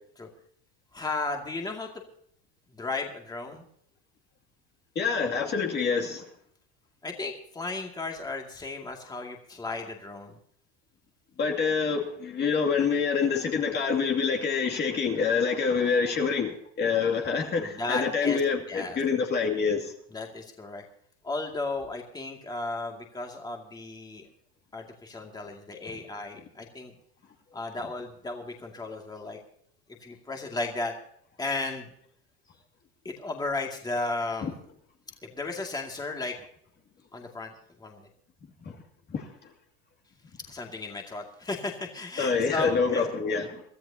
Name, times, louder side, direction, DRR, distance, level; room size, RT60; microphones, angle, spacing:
voice 1, 0.9-1.9 2.7-3.6 7.0-10.4 17.6-18.4 18.7-19.0 20.1-20.8 21.2-24.2 24.7-26.9 27.5-29.4 30.0-30.9 31.4-31.9 33.0-34.5 35.2-36.4 37.1-37.5 37.8-38.1 40.5-43.1, left 3 dB, 15° left, 1 dB, 2.3 m, -34 dB
voice 2, 5.0-6.3 11.4-19.9 34.4-34.5 38.6-38.8 39.1-39.3 42.2-43.6, left 5 dB, 35° left, 2 dB, 2.5 m, -26 dB
23.5 x 13.5 x 2.8 m, 0.67 s
supercardioid pair, 115°, 31 cm